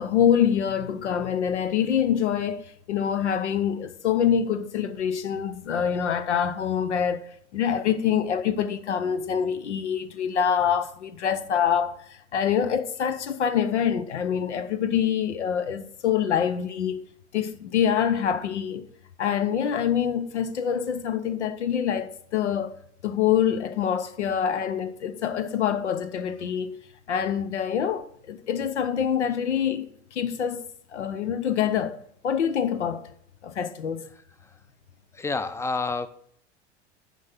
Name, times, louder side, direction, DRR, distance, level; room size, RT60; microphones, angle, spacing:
voice 1, 0.0-2.6 2.9-7.2 7.5-17.0 17.3-18.8 19.2-22.7 23.0-26.8 27.1-31.9 32.2-33.0 33.4-34.0, left 8 dB, 85° left, 0.8 m, -25 dB
voice 2, 35.1-36.1, left 3 dB, 10° left, 0.5 m, -29 dB
6.3 x 5.3 x 5.8 m
hypercardioid pair, 85°, 34 cm